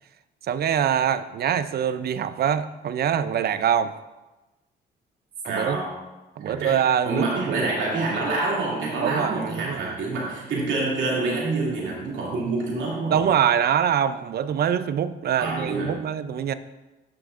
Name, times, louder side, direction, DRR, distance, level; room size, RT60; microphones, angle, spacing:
voice 1, 0.4-3.9 5.4-5.8 6.4-7.6 9.0-10.0 13.1-16.5, right 9 dB, 55° right, 13 dB, 0.5 m, -24 dB
voice 2, 5.4-6.0 6.4-13.2 15.3-15.9, right 3 dB, 75° right, -4 dB, 2.6 m, -27 dB
11.5 x 5.8 x 2.5 m, 1.1 s
cardioid pair, 90°, 20 cm